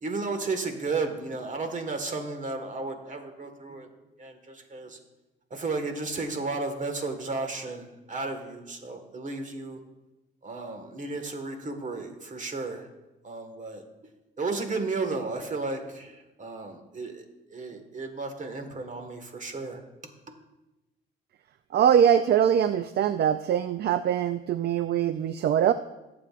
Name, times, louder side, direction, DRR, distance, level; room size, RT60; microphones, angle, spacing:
voice 1, 0.0-3.9 4.2-5.0 5.5-9.8 10.4-12.9 13.2-13.8 14.4-17.3 17.5-19.8, right 3 dB, 40° right, 5 dB, 1.7 m, -33 dB
voice 2, 21.7-25.7, right 9 dB, 55° right, 12 dB, 0.4 m, -22 dB
18.0 x 7.7 x 2.5 m, 1.0 s
cardioid pair, 90°, 20 cm